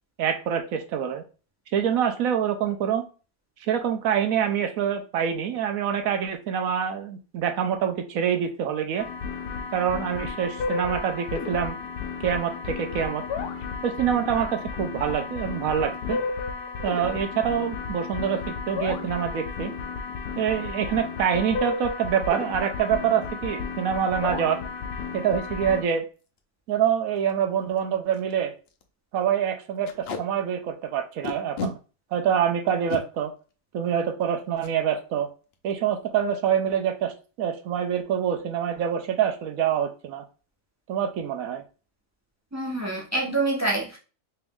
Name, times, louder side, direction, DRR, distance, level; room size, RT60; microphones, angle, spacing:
voice 1, 0.2-1.2 1.7-3.0 3.7-9.1 9.7-11.8 12.2-13.2 13.8-16.2 16.8-19.7 20.4-24.6 25.1-26.0 26.7-28.5 29.1-31.8 32.1-33.3 33.7-35.3 35.6-40.2 40.9-41.6, right 8 dB, 70° right, 1.0 m, -26 dB
sound 1, 9.0-25.8, left 5 dB, 85° left, 1.2 m, -33 dB
Packing tape duct tape, 26.2-26.4 26.8-26.9 27.2-27.3 27.8-27.9 28.1-28.3 28.7-28.8 29.8-30.2 31.2-31.7 32.7-33.0 34.6-34.7 35.1-35.3 35.5-35.9, left 4 dB, 60° left, 0.7 m, -33 dB
voice 2, 42.5-44.0, right 2 dB, 25° right, 0.4 m, -26 dB
3.4 x 3.0 x 3.5 m
omnidirectional pair, 1.6 m